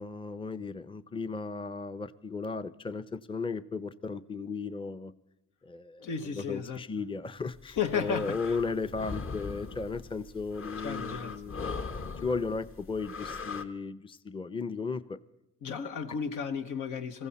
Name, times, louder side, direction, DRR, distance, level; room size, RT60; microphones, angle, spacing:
voice 1, 0.0-5.1 5.6-11.8 12.2-15.2, left 4 dB, 15° left, 0.6 m, -35 dB
voice 2, 6.0-6.8 7.8-8.4 10.8-11.3 15.6-17.3, left 6 dB, 85° left, 1.2 m, -33 dB
sound 1, 7.6-13.6, left 4 dB, 45° left, 1.2 m, -40 dB
21.0 x 15.0 x 4.2 m
cardioid pair, 90°, 30 cm